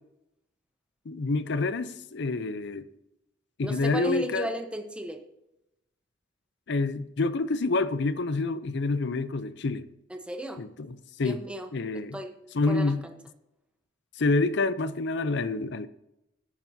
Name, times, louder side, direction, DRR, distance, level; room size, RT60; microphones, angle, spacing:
voice 1, 1.1-2.8 3.6-4.5 6.7-9.8 10.6-11.4 11.7-12.2 12.5-13.0 14.2-15.9, left 3 dB, 65° left, 0.6 m, -27 dB
voice 2, 3.6-5.2 10.1-10.6 11.2-11.7 12.1-12.4 12.7-13.1, right 1 dB, 5° right, 1.0 m, -34 dB
17.5 x 9.0 x 2.8 m
head